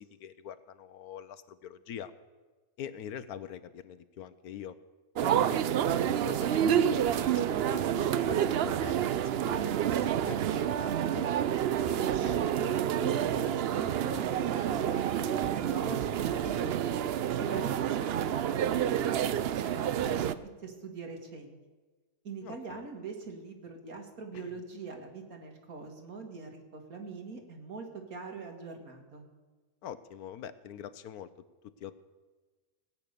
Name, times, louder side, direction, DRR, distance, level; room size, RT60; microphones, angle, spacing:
voice 1, 0.0-2.1 2.8-4.8 5.2-5.6 6.0-11.3 20.0-20.4 22.4-22.8 24.3-24.5 29.8-31.3 31.6-31.9, left 9 dB, 75° left, 13 dB, 1.2 m, -44 dB
sound 1, 5.2-20.3, right 10 dB, 85° right, 0.5 m, -29 dB
voice 2, 12.2-16.7 17.4-19.3 19.6-20.3 20.6-21.5 22.2-29.3, right 4 dB, 65° right, 3 dB, 2.3 m, -42 dB
18.0 x 8.8 x 6.7 m, 1.3 s
omnidirectional pair, 1.7 m